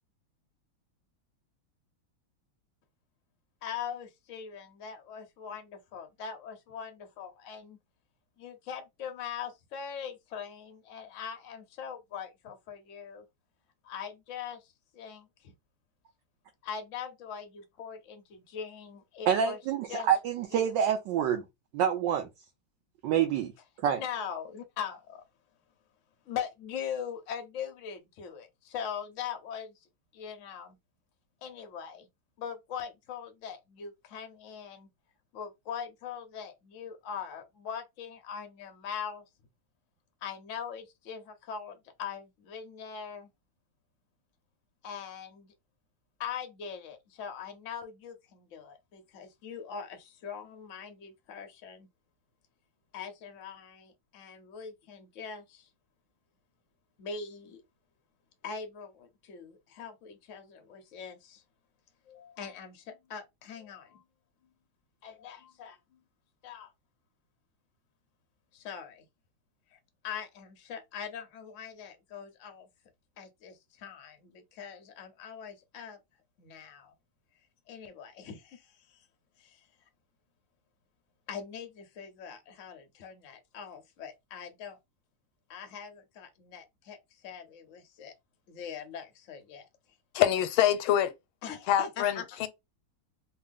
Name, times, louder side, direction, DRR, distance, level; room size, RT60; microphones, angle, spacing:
voice 1, 3.6-7.8 8.4-13.2 13.8-15.5 16.6-19.6 19.9-20.1 20.5-20.6 23.9-25.2 26.3-29.7 30.1-30.8 31.4-32.1 32.4-34.9 35.3-39.2 40.2-43.3 44.8-45.5 46.2-51.9 52.9-55.7 57.0-57.6 58.4-61.4 62.1-64.0 65.0-66.0 66.4-66.7 68.5-69.0 69.7-69.8 70.0-72.7 73.2-76.0 76.4-76.9 77.7-79.0 79.4-79.7 81.3-84.8 85.5-88.1 88.5-89.7 91.4-92.3, left 7 dB, 60° left, 0.8 m, -41 dB
voice 2, 19.3-21.4 21.7-22.3 23.0-23.5 23.8-24.0, right 8 dB, 75° right, 1.1 m, -27 dB
voice 3, 90.1-91.1 91.7-92.5, left 11 dB, 90° left, 1.4 m, -25 dB
3.4 x 2.2 x 3.5 m
omnidirectional pair, 2.2 m